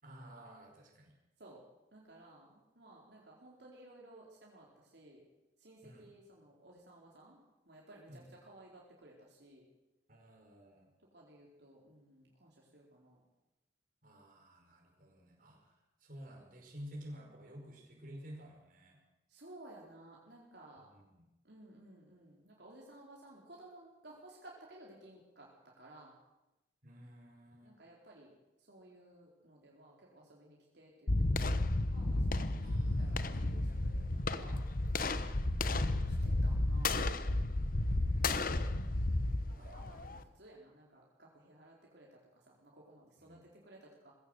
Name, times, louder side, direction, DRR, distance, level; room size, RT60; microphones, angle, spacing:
voice 1, 0.0-1.1 5.8-6.1 8.1-8.3 10.1-10.9 14.0-19.0 20.8-21.2 26.8-27.7 32.6-33.2 35.2-35.6 37.8-38.6 39.5-39.8 43.2-43.4, equal, 50° right, 1 dB, 5.3 m, -53 dB
voice 2, 1.9-5.2 5.6-7.4 7.7-9.6 11.1-13.2 15.4-15.6 19.3-20.9 21.4-26.1 27.6-28.3 28.6-34.6 36.1-37.1 39.5-44.1, right 1 dB, 65° right, -3 dB, 4.3 m, -57 dB
sound 1, 31.1-40.2, left 2 dB, 50° left, 1.0 m, -32 dB
20.5 x 16.5 x 8.1 m, 0.97 s
head